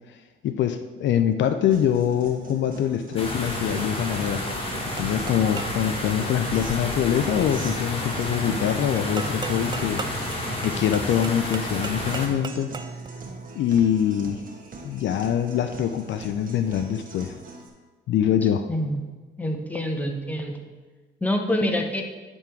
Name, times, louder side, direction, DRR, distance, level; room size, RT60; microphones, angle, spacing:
voice 1, 0.4-4.5 5.0-10.0 10.6-12.7 13.5-14.4 14.8-17.3 18.1-18.7, left 9 dB, 70° left, 9 dB, 0.5 m, -24 dB
Guitar, 1.7-17.7, right 3 dB, 45° right, 1.3 m, -42 dB
sound 1, 3.2-12.3, left 1 dB, 30° left, 1.6 m, -30 dB
sound 2, 5.0-5.9 9.2-13.1, right 5 dB, 20° right, 0.3 m, -37 dB
voice 2, 18.7-19.1 19.4-20.6 21.2-22.0, left 1 dB, 10° left, 2 dB, 1.0 m, -26 dB
10.5 x 3.5 x 4.5 m, 1.3 s
cardioid pair, 90°, 20 cm